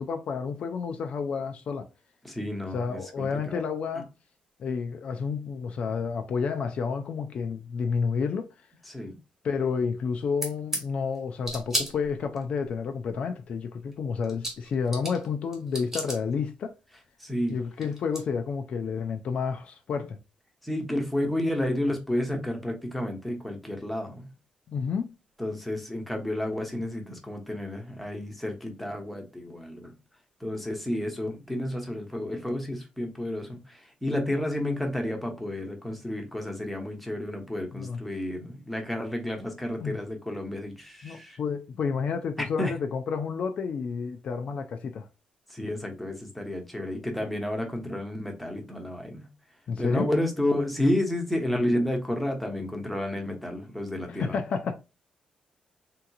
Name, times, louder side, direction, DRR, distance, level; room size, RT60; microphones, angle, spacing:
voice 1, 0.0-1.9 2.7-4.1 4.6-8.5 9.4-16.8 17.5-20.2 24.7-25.1 37.7-38.0 39.8-40.0 41.0-45.1 49.7-50.1 54.1-54.8, left 5 dB, 50° left, 0.4 m, -30 dB
voice 2, 2.2-3.6 8.9-9.2 17.2-17.6 20.6-24.3 25.4-29.9 30.4-41.4 42.6-42.7 45.5-49.3 49.8-54.4, left 1 dB, ahead, 0.8 m, -31 dB
sound 1, 10.4-10.8 11.4-12.4 13.9-14.0 14.2-15.3 15.5-16.2 17.5-17.6 17.8-18.2, right 1 dB, 15° right, 1.3 m, -32 dB
3.6 x 2.9 x 2.2 m
wide cardioid pair, 175°, 3 cm